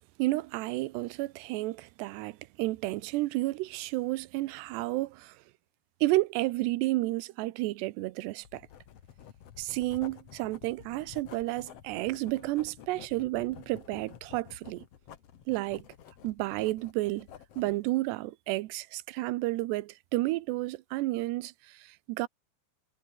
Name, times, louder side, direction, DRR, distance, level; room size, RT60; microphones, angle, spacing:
voice 1, 0.2-5.4 6.0-8.6 9.6-14.8 15.5-15.9 16.2-17.3 17.6-22.3, right 19 dB, 80° right, 2.9 m, -31 dB
Writing, 8.4-17.8, left 9 dB, 60° left, 1.7 m, -51 dB
omnidirectional pair, 5.0 m